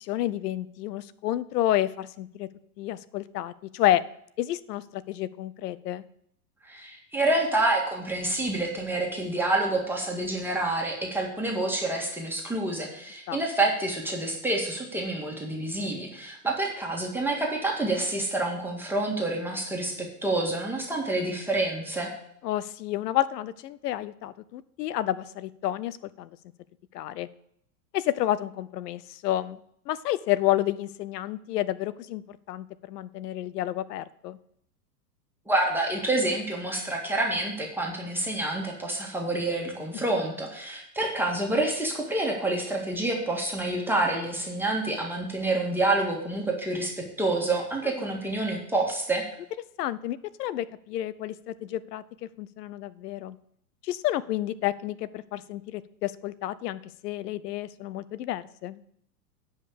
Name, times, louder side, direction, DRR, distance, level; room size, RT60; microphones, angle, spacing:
voice 1, 0.0-2.5 2.8-4.0 4.4-6.0 13.3-13.4 22.4-26.3 26.9-27.3 27.9-29.6 29.9-34.4 39.9-40.0 48.0-48.2 49.8-53.4 53.8-58.8, left 14 dB, 70° left, 18 dB, 0.7 m, -30 dB
voice 2, 6.6-22.1 35.5-49.2, right 2 dB, 5° right, -2 dB, 1.9 m, -28 dB
9.4 x 5.6 x 6.8 m, 0.71 s
hypercardioid pair, 125°, 49 cm